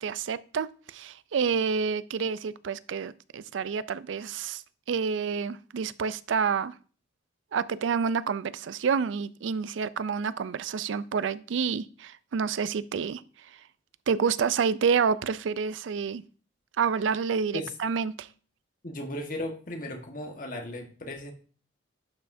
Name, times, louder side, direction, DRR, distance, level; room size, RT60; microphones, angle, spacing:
voice 1, 0.0-4.6 4.9-6.7 7.5-13.2 14.1-16.2 16.8-18.3, right 6 dB, 90° right, 0.4 m, -28 dB
voice 2, 18.8-21.3, left 1 dB, 45° left, 1.4 m, -36 dB
11.5 x 5.5 x 2.6 m
head